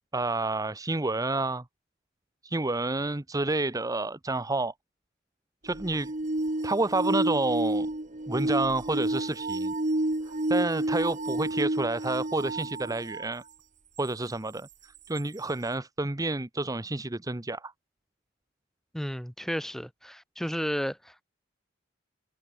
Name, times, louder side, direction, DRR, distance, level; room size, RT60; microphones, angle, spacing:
voice 1, 0.1-1.6 2.4-4.7 5.6-6.1 6.6-7.9 8.3-9.7 10.3-13.4 14.0-17.7, right 2 dB, 20° right, 0.9 m, -29 dB
sound 1, 5.7-13.3 14.0-14.1 15.2-15.3, right 1 dB, 40° right, 1.7 m, -30 dB
voice 2, 18.9-21.2, equal, ahead, 1.8 m, -33 dB
head